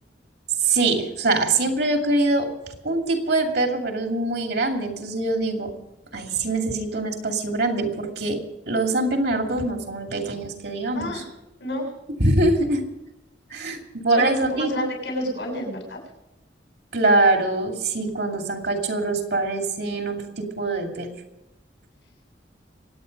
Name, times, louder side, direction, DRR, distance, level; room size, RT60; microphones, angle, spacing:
voice 1, 0.6-2.5 2.8-5.7 6.1-8.4 8.7-11.1 12.2-12.8 13.5-14.9 16.9-21.1, right 2 dB, 65° right, 3 dB, 2.5 m, -23 dB
voice 2, 10.9-11.3 11.6-11.9 14.1-16.0, left 1 dB, 85° left, 0 dB, 7.1 m, -30 dB
25.0 x 9.4 x 5.3 m, 0.92 s
head